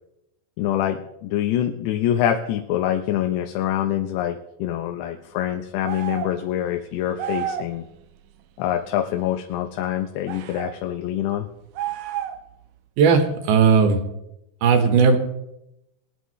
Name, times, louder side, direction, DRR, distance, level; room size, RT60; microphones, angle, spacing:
voice 1, 0.6-7.9 8.6-11.5, left 11 dB, 85° left, 5 dB, 2.9 m, -25 dB
sound 1, 5.8-6.4 7.2-7.7 10.3-10.7 11.7-12.5, right 10 dB, 85° right, 1.9 m, -30 dB
voice 2, 13.0-14.0 14.6-15.2, right 5 dB, 65° right, 6 dB, 2.3 m, -16 dB
22.0 x 11.5 x 3.1 m, 0.87 s
omnidirectional pair, 4.8 m